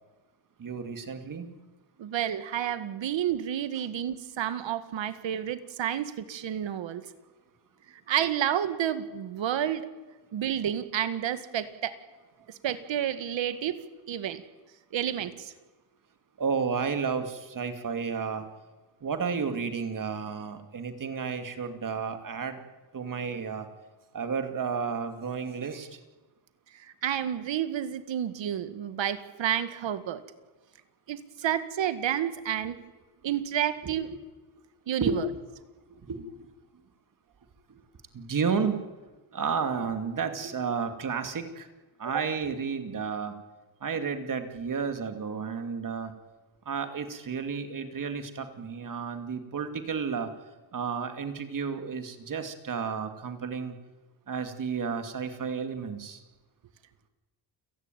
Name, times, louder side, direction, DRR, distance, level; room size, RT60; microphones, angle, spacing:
voice 1, 0.6-1.5 16.4-18.5 19.0-22.6 22.9-23.7 24.1-26.0 33.8-33.9 35.0-35.2 35.9-36.5 37.7-37.8 38.1-38.8 39.3-41.7 42.0-43.3 43.8-46.1 46.7-50.3 50.7-53.7 54.3-56.2, right 6 dB, 40° right, 7 dB, 2.5 m, -32 dB
voice 2, 2.0-7.0 8.1-9.9 10.3-12.0 12.5-13.8 14.1-14.4 14.9-15.5 26.7-30.2 31.1-32.8 33.2-34.1 34.9-35.3 42.1-42.2, right 10 dB, 65° right, 11 dB, 2.0 m, -30 dB
29.5 x 17.0 x 9.3 m, 1.2 s
cardioid pair, 135°, 48 cm